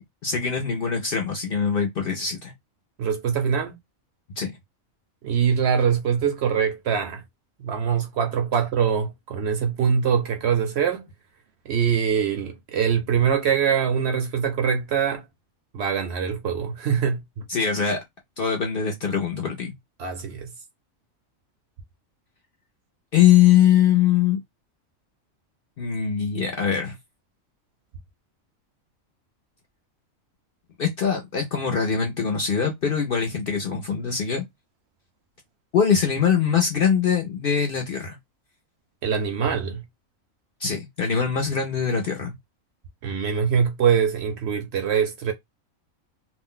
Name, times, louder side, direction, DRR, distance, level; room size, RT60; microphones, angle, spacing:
voice 1, 0.2-2.5 4.4-4.5 17.5-18.0 18.4-19.7 23.1-24.4 25.8-26.9 30.8-34.4 35.7-38.2 40.6-42.4, left 8 dB, 60° left, 0.6 m, -22 dB
voice 2, 3.0-3.8 5.2-7.2 7.6-11.0 11.7-15.2 15.7-17.4 20.0-20.5 39.0-39.8 43.0-45.3, right 7 dB, 65° right, 0.7 m, -23 dB
2.5 x 2.1 x 3.7 m
omnidirectional pair, 1.4 m